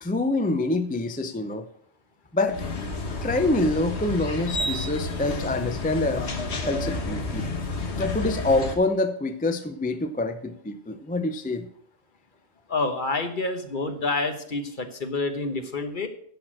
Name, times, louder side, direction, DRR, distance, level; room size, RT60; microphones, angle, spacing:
voice 1, 0.0-1.7 2.3-2.6 3.2-6.3 6.6-7.5 8.0-11.7, left 2 dB, 10° left, 8 dB, 0.5 m, -26 dB
sound 1, 2.5-8.7, left 2 dB, 85° left, 1.5 m, -30 dB
voice 2, 12.7-16.1, left 3 dB, 50° left, 7 dB, 1.2 m, -28 dB
10.0 x 6.3 x 6.4 m, 0.66 s
omnidirectional pair, 1.1 m